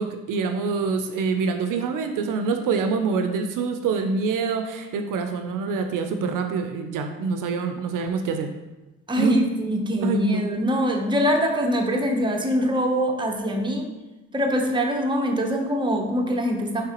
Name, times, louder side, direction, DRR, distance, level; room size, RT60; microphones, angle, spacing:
voice 1, 0.0-8.5 9.2-9.4 10.0-10.5, right 4 dB, 70° right, 6 dB, 0.5 m, -25 dB
voice 2, 9.1-13.9 14.3-16.9, equal, 15° right, 2 dB, 0.7 m, -23 dB
4.7 x 3.3 x 2.9 m, 1.1 s
supercardioid pair, 60°, 33 cm